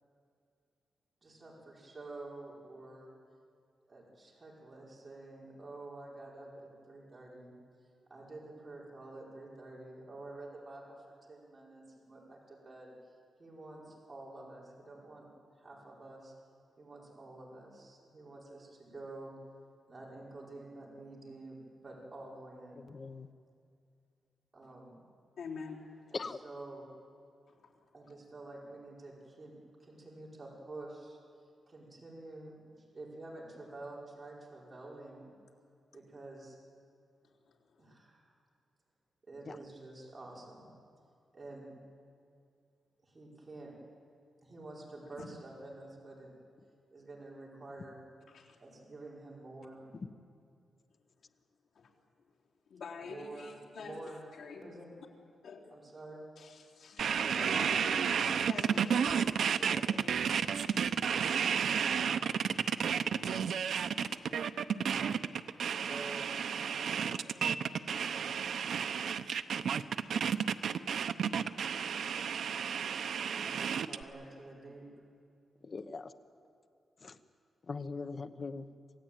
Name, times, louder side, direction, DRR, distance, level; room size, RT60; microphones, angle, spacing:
voice 1, 1.2-3.1 3.9-7.6 8.1-12.9 13.4-15.3 15.6-16.3 16.8-19.3 19.9-22.9 24.5-25.0 26.1-26.9 27.9-29.5 29.8-31.2 31.7-35.3 35.9-36.6 37.8-38.4 39.3-40.7 41.3-41.8 43.0-43.7 44.4-46.3 46.9-48.0 48.6-49.9 53.0-53.5 53.8-54.2 54.6-54.9 55.7-56.2 59.5-60.6 65.6-67.4 67.8-68.4 73.2-74.9, right 2 dB, 25° right, -4 dB, 5.2 m, -49 dB
voice 2, 22.9-23.3 26.1-26.4 39.5-39.6 75.6-76.1 77.0-77.2 77.7-78.7, left 4 dB, 35° left, 10 dB, 1.0 m, -40 dB
voice 3, 25.4-26.2 27.5-27.8 37.2-37.5 45.0-45.3 48.3-48.6 51.7-51.9 52.7-54.7 55.4-55.7 56.4-59.7 60.3-60.4 60.6-61.3 61.7-62.1 70.0-70.2 72.4-72.5, left 5 dB, 80° left, -3 dB, 3.8 m, -48 dB
sound 1, 57.0-74.0, right 7 dB, 70° right, 0.7 m, -32 dB
27.5 x 16.5 x 9.1 m, 2.4 s
wide cardioid pair, 150°, 0 cm